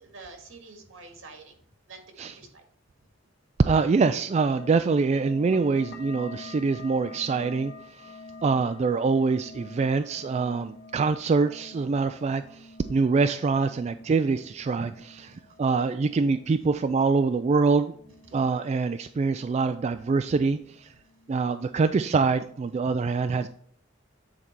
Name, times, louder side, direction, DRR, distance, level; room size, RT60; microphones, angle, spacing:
voice 1, 0.0-2.6 8.0-8.4 15.2-15.6 18.1-18.5 21.0-21.4 21.9-22.0, right 3 dB, 85° right, 4 dB, 1.8 m, -49 dB
voice 2, 3.7-7.7 8.4-17.9 18.3-20.9 21.3-23.5, right 4 dB, 35° right, 9 dB, 0.3 m, -25 dB
sound 1, 4.6-19.7 20.0-20.8 21.1-21.8 22.2-22.6, left 2 dB, 55° left, 1.4 m, -48 dB
8.8 x 4.1 x 4.5 m, 0.62 s
head